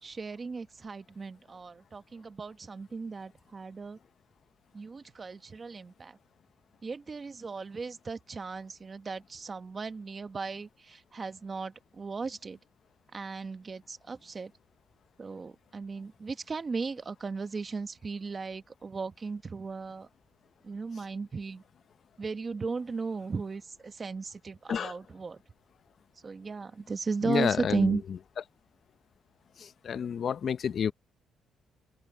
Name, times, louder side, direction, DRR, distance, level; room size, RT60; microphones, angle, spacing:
voice 1, 0.0-4.0 4.7-6.2 6.8-12.6 13.1-14.5 15.2-20.1 20.6-21.6 22.2-25.4 26.2-28.0, right 4 dB, 35° right, 1.3 m, -36 dB
voice 2, 27.3-27.9 29.6-30.9, left 7 dB, 55° left, 0.8 m, -29 dB
open air
cardioid pair, 90°, 0 cm